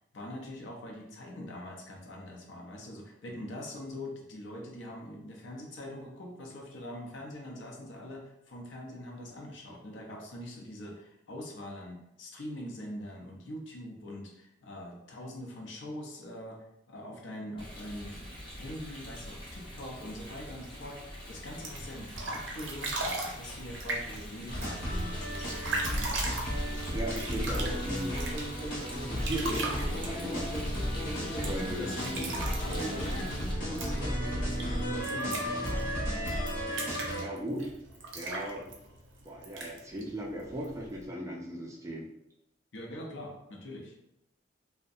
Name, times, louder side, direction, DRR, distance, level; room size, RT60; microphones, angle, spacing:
voice 1, 0.1-25.5 25.9-26.2 31.2-36.3 42.7-43.9, left 1 dB, 70° left, 0 dB, 0.6 m, -43 dB
Rain, 17.6-33.5, equal, 25° left, 0.6 m, -44 dB
sound 1, 21.5-41.1, right 2 dB, 70° right, 0.5 m, -40 dB
sound 2, 24.5-37.2, equal, 45° left, 0.9 m, -34 dB
voice 2, 26.9-28.1 29.1-30.6 31.4-31.9 37.1-37.7 38.1-38.7 39.2-42.1, right 1 dB, 15° right, -1 dB, 0.3 m, -37 dB
2.6 x 2.1 x 2.4 m, 0.82 s
head